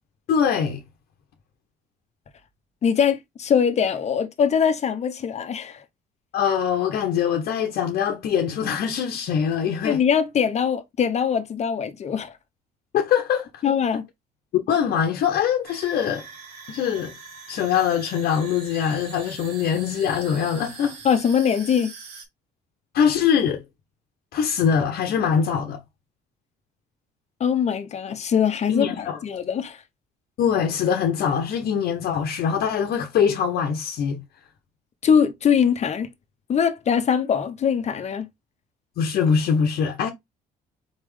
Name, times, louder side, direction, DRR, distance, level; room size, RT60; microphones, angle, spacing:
voice 1, 0.3-0.8 6.3-10.0 12.9-13.5 14.5-16.2 16.7-17.1 17.5-21.0 22.9-23.6 24.3-25.8 28.7-29.2 30.4-34.2 39.0-40.1, left 7 dB, 65° left, 0.9 m, -23 dB
voice 2, 2.8-5.8 9.8-12.3 13.6-14.1 21.0-21.9 27.4-29.8 35.0-36.1 36.5-38.3, left 7 dB, 40° left, 0.8 m, -22 dB
sound 1, 15.6-22.3, right 5 dB, 85° right, 1.7 m, -42 dB
4.4 x 3.5 x 3.2 m
cardioid pair, 110°, 17 cm